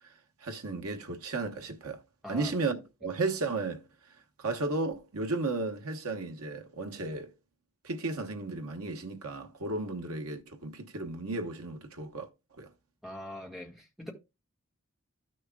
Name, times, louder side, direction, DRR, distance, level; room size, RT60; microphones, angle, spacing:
voice 1, 0.4-2.0 2.3-3.8 4.4-7.3 7.8-12.3 12.6-12.7, right 3 dB, 85° right, 1.1 m, -34 dB
voice 2, 13.0-14.1, left 1 dB, ahead, 1.7 m, -42 dB
13.5 x 6.4 x 2.3 m
head